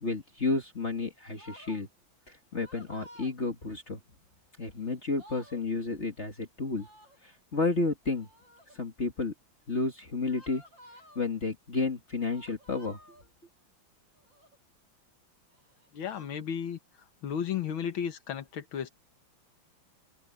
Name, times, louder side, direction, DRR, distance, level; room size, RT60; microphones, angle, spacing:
voice 1, 0.0-1.9 2.3-4.0 4.6-6.9 7.2-8.3 8.7-9.3 9.7-10.6 11.2-13.0, left 3 dB, 35° left, 2.2 m, -31 dB
sound 1, 1.4-1.8 2.5-3.3 4.7-4.8 5.0-5.6 6.7-7.2 8.2-8.8 10.3-11.3 12.3-13.3 14.2-14.6 15.5-16.3, equal, 70° right, 7.3 m, -54 dB
voice 2, 15.9-16.8 17.2-18.9, left 8 dB, 90° left, 2.1 m, -33 dB
omnidirectional pair, 2.2 m